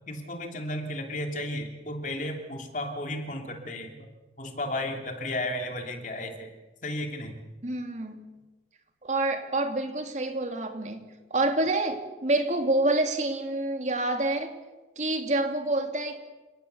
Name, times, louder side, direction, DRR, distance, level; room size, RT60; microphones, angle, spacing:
voice 1, 0.1-4.1 4.4-6.5 6.8-7.4, left 1 dB, 45° left, 4 dB, 3.1 m, -34 dB
voice 2, 7.6-8.3 9.0-14.6 15.0-16.2, right 2 dB, 40° right, 5 dB, 2.7 m, -27 dB
29.5 x 18.0 x 7.0 m, 1.2 s
head